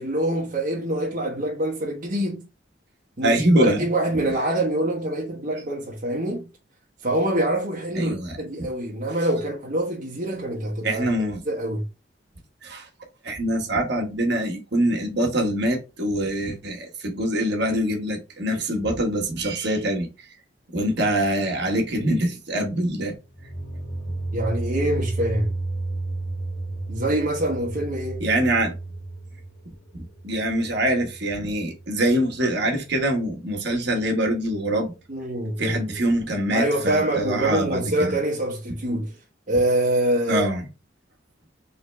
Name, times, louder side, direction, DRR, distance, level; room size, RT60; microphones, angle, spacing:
voice 1, 0.0-2.4 3.2-6.5 7.0-11.0 11.5-11.8 24.3-25.5 26.9-28.2 35.1-36.0 36.5-39.1 39.5-40.4, right 1 dB, 45° right, 1.1 m, -25 dB
voice 2, 3.2-3.9 7.9-8.4 9.2-9.3 10.8-11.4 12.6-12.9 13.2-20.3 20.7-23.1 28.2-28.7 30.2-34.9 35.6-38.2 40.3-40.7, right 1 dB, 60° right, 1.4 m, -24 dB
sound 1, 23.3-32.2, right 2 dB, 65° left, 2.2 m, -32 dB
4.0 x 3.1 x 3.3 m
head